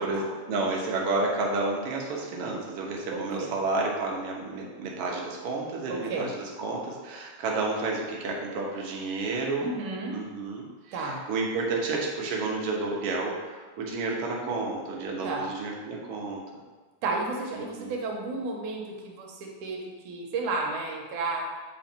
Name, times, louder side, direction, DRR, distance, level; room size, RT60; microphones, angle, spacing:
voice 1, 0.0-9.7 10.1-16.4 17.5-17.9, right 3 dB, 60° right, -2 dB, 1.6 m, -31 dB
voice 2, 3.1-3.5 5.9-6.3 9.6-10.2 10.9-11.2 15.2-15.5 17.0-19.8 20.1-21.4, right 3 dB, 80° right, 0 dB, 2.4 m, -32 dB
8.4 x 3.1 x 4.5 m, 1.4 s
omnidirectional pair, 3.5 m